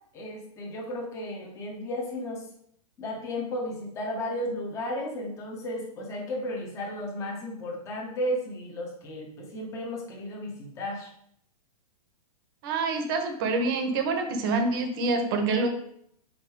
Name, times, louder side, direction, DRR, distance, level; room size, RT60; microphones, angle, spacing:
voice 1, 0.1-2.5 3.0-11.1, left 1 dB, 15° left, -1 dB, 0.9 m, -34 dB
voice 2, 12.6-15.7, right 3 dB, 35° right, 6 dB, 1.0 m, -26 dB
5.2 x 4.5 x 4.7 m, 0.69 s
hypercardioid pair, 160°, 20 cm